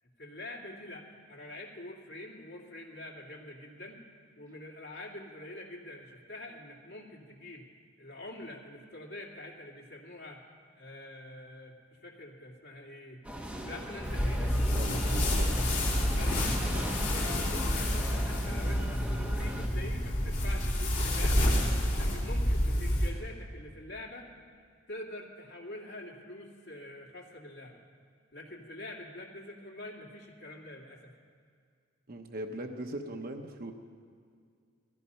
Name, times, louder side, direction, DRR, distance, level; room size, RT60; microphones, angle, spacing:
voice 1, 0.0-4.0 4.4-7.7 8.0-10.4 10.8-13.2 13.6-14.7 16.0-16.6 17.0-19.0 19.3-21.5 21.9-24.3 24.9-27.8 28.3-31.1, left 1 dB, 55° left, -1 dB, 2.6 m, -45 dB
sound 1, 13.2-19.7, equal, 5° right, 1.2 m, -39 dB
sound 2, 14.0-23.1, left 1 dB, 40° left, 3.3 m, -29 dB
voice 2, 14.7-15.7 32.1-33.7, right 1 dB, 45° right, 4 dB, 1.0 m, -40 dB
17.5 x 14.5 x 5.7 m, 2.2 s
head